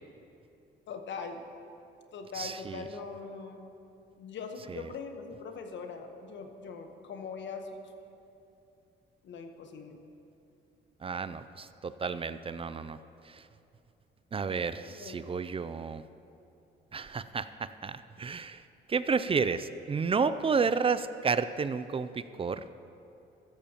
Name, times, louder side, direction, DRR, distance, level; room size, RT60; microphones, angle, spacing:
voice 1, 0.9-1.5 2.1-3.7 4.2-7.9 9.2-10.0 12.1-12.3 14.8-15.3, left 5 dB, 70° left, 6 dB, 1.2 m, -42 dB
voice 2, 2.4-2.8 11.0-13.0 14.3-16.0 16.9-18.6 18.9-22.6, right 5 dB, 30° right, 13 dB, 0.4 m, -31 dB
15.5 x 13.5 x 3.0 m, 2.7 s
cardioid pair, 90°, 20 cm